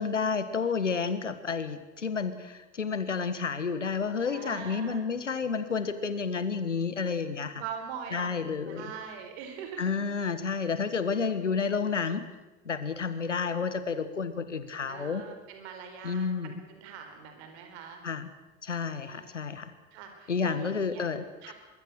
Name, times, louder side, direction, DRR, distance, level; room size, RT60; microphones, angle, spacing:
voice 1, 0.0-7.6 8.1-8.9 9.8-12.2 12.6-15.2 16.0-16.6 18.0-18.3 18.6-19.7 20.3-21.5, left 5 dB, 85° left, 12 dB, 1.5 m, -30 dB
voice 2, 4.2-5.0 7.5-10.0 11.6-11.7 14.8-18.0 19.0-19.3 19.9-21.1 21.4-21.5, right 7 dB, 65° right, 5 dB, 4.8 m, -42 dB
23.5 x 23.0 x 6.5 m, 1.1 s
figure-of-eight pair, 65°, 36 cm